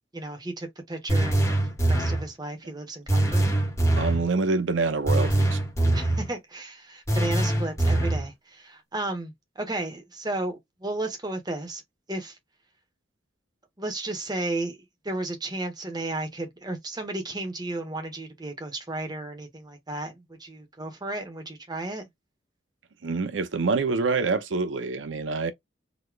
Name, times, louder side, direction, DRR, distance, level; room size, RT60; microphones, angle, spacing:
voice 1, 0.1-1.5 1.9-3.4 5.9-11.8 12.1-12.4 13.8-14.8 15.0-22.1, right 2 dB, 20° right, 1.3 m, -33 dB
sound 1, 1.1-2.3 3.1-4.3 5.1-6.3 7.1-8.3, right 1 dB, 15° left, 1.6 m, -23 dB
voice 2, 4.0-5.6 23.0-25.5, right 4 dB, 80° right, 0.6 m, -26 dB
4.1 x 3.2 x 2.3 m
head